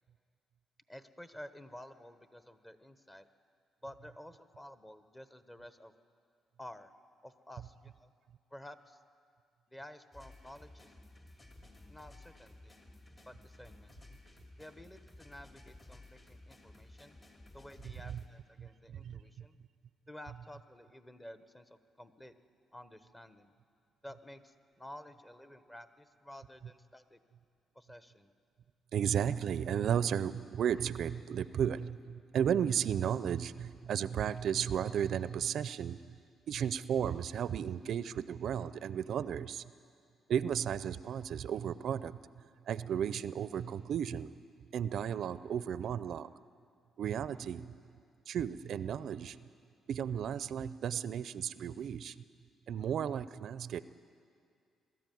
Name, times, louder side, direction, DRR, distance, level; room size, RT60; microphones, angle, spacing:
voice 1, 0.9-3.3 3.8-5.9 6.6-6.9 7.2-8.1 8.5-9.0 9.7-10.9 11.9-12.7 13.2-13.9 14.6-17.2 17.5-19.6 20.1-22.4 22.7-23.5 24.0-27.2 27.7-28.3, left 1 dB, 15° left, 11 dB, 1.0 m, -52 dB
sound 1, 10.1-18.3, left 2 dB, 30° left, 2.6 m, -55 dB
voice 2, 18.6-19.2 28.9-36.2 36.5-39.7 40.3-42.2 42.7-44.3 44.7-46.3 47.0-47.7 48.3-49.4 49.9-52.1 52.7-53.8, right 8 dB, 65° right, 15 dB, 0.5 m, -34 dB
21.0 x 13.0 x 9.3 m, 2.3 s
cardioid pair, 90°, 0 cm